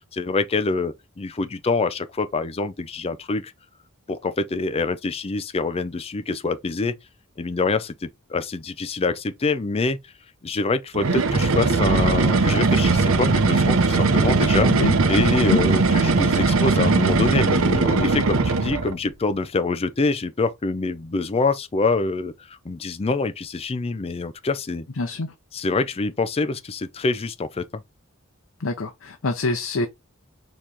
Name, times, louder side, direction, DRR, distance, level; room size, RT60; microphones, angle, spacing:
voice 1, 0.1-3.5 4.1-6.9 7.4-10.0 10.4-14.7 15.1-24.9 25.5-27.6, left 3 dB, 30° left, 0.5 m, -25 dB
sound 1, 10.9-19.0, right 3 dB, 75° right, 0.7 m, -19 dB
voice 2, 25.0-25.3 28.6-29.9, left 3 dB, 70° left, 0.7 m, -25 dB
4.7 x 3.0 x 3.4 m
head